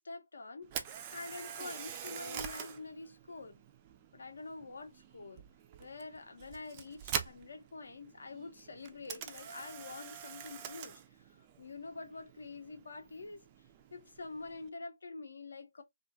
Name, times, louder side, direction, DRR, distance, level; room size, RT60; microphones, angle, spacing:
voice 1, 0.0-3.6 4.1-5.5 5.8-13.5 13.9-15.8, left 3 dB, 65° left, 0.6 m, -47 dB
Camera, 0.6-14.7, right 8 dB, 25° right, 0.3 m, -45 dB
2.3 x 2.3 x 2.6 m
figure-of-eight pair, 150°, 0 cm